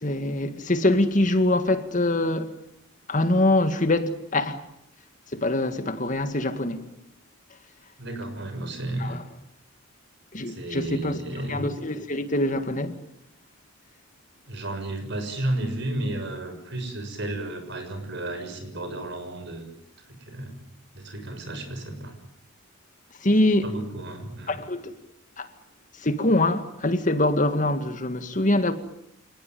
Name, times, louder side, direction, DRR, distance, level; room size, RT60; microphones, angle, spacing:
voice 1, 0.0-2.5 3.1-4.6 5.3-6.9 9.0-9.2 10.3-11.2 11.5-13.0 23.2-23.7 24.5-24.9 25.4-25.5 26.0-28.7, left 1 dB, 40° left, 2.0 m, -24 dB
voice 2, 8.0-9.2 10.5-11.7 14.4-19.7 20.1-20.5 20.9-22.2 23.6-24.6, right 1 dB, 60° right, 6.6 m, -32 dB
28.5 x 19.0 x 9.3 m
head